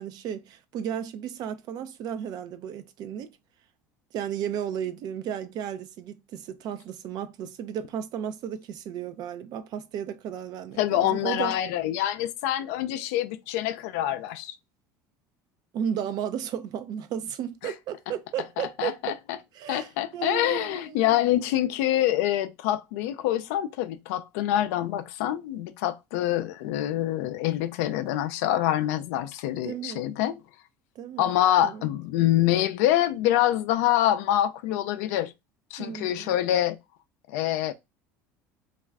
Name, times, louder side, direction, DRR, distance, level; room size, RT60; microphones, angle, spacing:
voice 1, 0.0-3.3 4.1-11.6 15.7-19.2 19.5-21.2 29.6-30.0 31.0-31.3 31.6-31.9 35.8-36.3, right 9 dB, 55° right, 0.5 m, -34 dB
voice 2, 10.8-14.6 17.6-17.7 18.8-19.1 19.7-30.4 31.2-35.3 35.7-36.8 37.3-37.7, left 13 dB, 80° left, 0.4 m, -25 dB
2.4 x 2.2 x 3.4 m
supercardioid pair, 95°, 8 cm